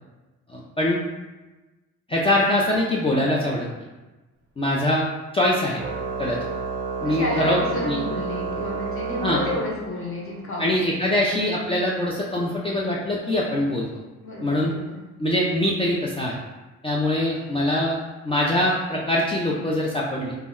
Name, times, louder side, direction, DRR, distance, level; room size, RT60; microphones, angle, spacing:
voice 1, 0.5-1.0 2.1-3.7 4.6-5.0 5.3-5.8 6.2-6.4 7.0-7.6 7.8-8.0 9.2-9.4 10.6-13.9 14.4-14.7 15.2-16.4 16.8-20.4, left 1 dB, 20° left, -4 dB, 0.3 m, -23 dB
Organ, 5.8-10.3, right 4 dB, 40° right, 0.5 m, -30 dB
voice 2, 7.0-10.7 11.1-11.2 14.2-14.9, left 2 dB, 45° left, -3 dB, 0.8 m, -31 dB
2.1 x 2.0 x 3.5 m, 1.1 s
cardioid pair, 90°, 30 cm